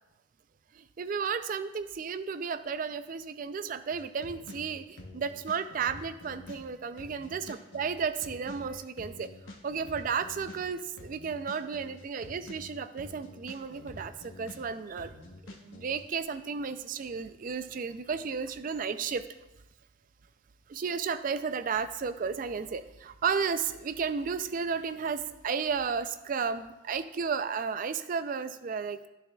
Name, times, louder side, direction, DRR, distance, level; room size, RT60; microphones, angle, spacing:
voice 1, 0.8-9.3 9.6-15.1 15.4-19.2 20.7-29.0, right 6 dB, 40° right, 12 dB, 0.3 m, -33 dB
sound 1, 3.9-16.0, left 2 dB, 75° left, 0.9 m, -47 dB
11.0 x 6.7 x 2.3 m, 0.96 s
head